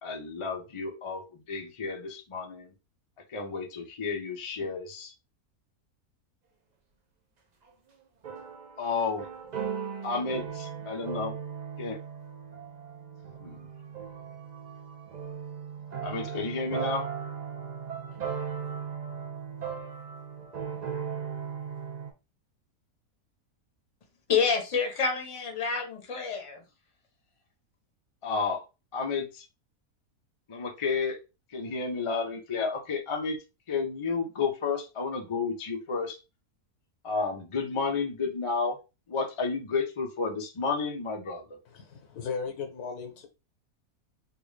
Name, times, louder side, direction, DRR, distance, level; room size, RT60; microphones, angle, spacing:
voice 1, 0.0-2.7 3.3-5.1 8.8-9.3 10.0-11.3 11.8-12.0 13.4-13.7 16.0-17.1 28.2-28.6 28.9-29.5 30.5-31.2 31.5-33.4 33.7-36.2 37.0-38.8 39.1-41.6, left 4 dB, 50° left, 0.3 m, -31 dB
sound 1, 7.7-7.8 8.2-22.1, right 7 dB, 60° right, 0.4 m, -37 dB
voice 2, 24.3-26.6, left 5 dB, 30° left, 0.7 m, -28 dB
voice 3, 41.7-43.3, left 5 dB, 85° left, 1.4 m, -36 dB
3.4 x 2.4 x 3.2 m
omnidirectional pair, 1.6 m